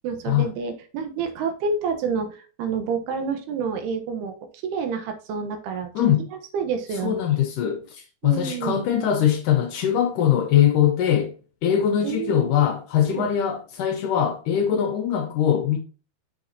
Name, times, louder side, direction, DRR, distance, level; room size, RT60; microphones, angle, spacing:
voice 1, 0.0-4.3 4.6-5.9 6.5-7.4 8.2-8.8 12.0-12.5 13.1-13.3 14.7-14.8, right 5 dB, 90° right, 3.1 m, -28 dB
voice 2, 7.0-11.3 11.6-15.8, left 9 dB, 75° left, 2.0 m, -22 dB
6.4 x 6.2 x 2.7 m
omnidirectional pair, 4.4 m